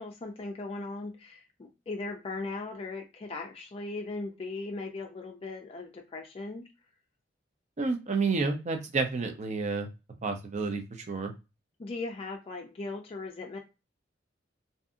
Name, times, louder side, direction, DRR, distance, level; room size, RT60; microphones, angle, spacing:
voice 1, 0.0-6.7 11.8-13.6, left 3 dB, 30° left, 1 dB, 0.4 m, -38 dB
voice 2, 7.8-9.9 10.2-10.8 11.1-11.3, right 4 dB, 40° right, 5 dB, 0.6 m, -29 dB
2.7 x 2.5 x 2.4 m, 0.27 s
head